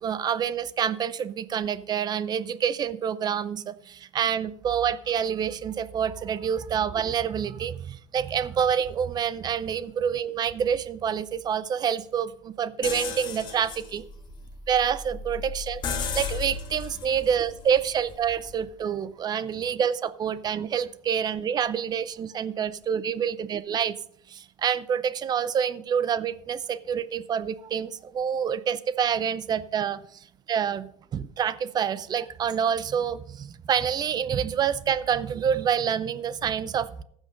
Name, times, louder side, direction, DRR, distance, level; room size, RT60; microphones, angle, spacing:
voice 1, 0.0-14.0 14.7-23.9 24.3-37.0, right 8 dB, 30° right, 17 dB, 0.6 m, -27 dB
sound 1, 12.8-18.6, left 5 dB, 35° left, 1.8 m, -35 dB
15.0 x 6.3 x 5.1 m, 0.66 s
cardioid pair, 130°, 13 cm